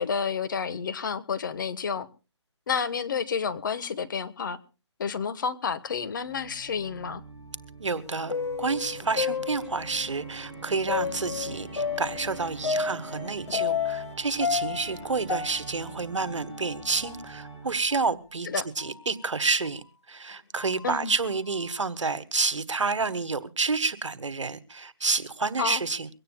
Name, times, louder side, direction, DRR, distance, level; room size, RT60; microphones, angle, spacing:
voice 1, 0.0-2.1 2.7-4.6 5.0-7.2 18.5-18.6 20.8-21.1 25.6-25.8, left 6 dB, 45° left, 1.3 m, -30 dB
Organ, 6.2-18.0, right 3 dB, 15° left, 5.4 m, -44 dB
voice 2, 7.8-18.5 18.8-26.1, right 4 dB, 85° right, 1.3 m, -29 dB
sound 1, 7.9-10.1 10.9-14.1 14.4-16.8 17.0-17.1 17.9-18.0 18.8-19.0 19.6-19.7 20.5-20.8, left 6 dB, 70° left, 1.8 m, -31 dB
23.0 x 17.5 x 2.2 m
hypercardioid pair, 160°, 15 cm